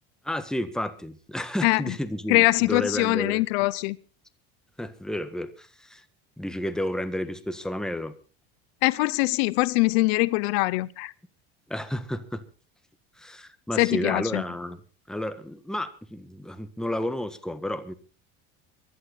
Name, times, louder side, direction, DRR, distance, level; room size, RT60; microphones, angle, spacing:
voice 1, 0.2-3.4 4.8-6.0 6.4-8.1 11.7-12.4 13.2-14.8 15.1-17.9, left 1 dB, ahead, 1.6 m, -31 dB
voice 2, 1.6-1.9 2.3-4.0 8.8-11.1 13.8-14.4, left 23 dB, 85° left, 0.7 m, -23 dB
24.0 x 11.5 x 4.0 m
supercardioid pair, 120°, 31 cm